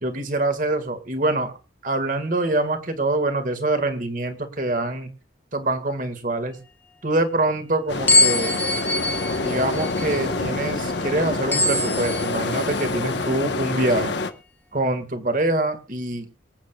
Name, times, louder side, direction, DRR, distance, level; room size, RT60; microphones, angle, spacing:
voice 1, 0.0-1.6 1.8-5.1 5.5-6.6 7.0-8.7 9.4-14.2 14.7-16.3, right 2 dB, 45° right, 8 dB, 1.9 m, -25 dB
sound 1, 7.9-14.3, left 3 dB, 65° left, 1.1 m, -27 dB
sound 2, 8.1-12.9, left 2 dB, 10° left, 0.8 m, -24 dB
25.5 x 8.6 x 2.4 m, 0.31 s
head